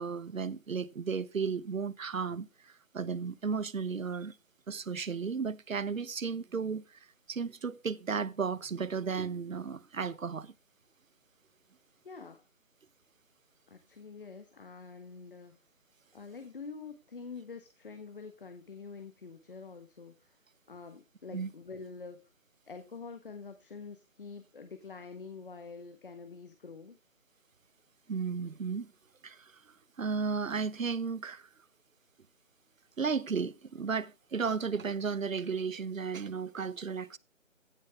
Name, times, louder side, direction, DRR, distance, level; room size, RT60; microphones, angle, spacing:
voice 1, 0.0-2.5 2.9-4.3 4.7-6.8 7.3-10.5 21.3-21.5 28.1-28.9 29.2-29.5 30.0-31.5 33.0-37.2, right 5 dB, 75° right, 1.0 m, -34 dB
voice 2, 12.0-12.4 13.7-15.6 16.1-20.4 20.7-22.2 22.7-27.0, left 4 dB, 40° left, 1.4 m, -46 dB
15.5 x 7.3 x 3.6 m
figure-of-eight pair, 165°, 40 cm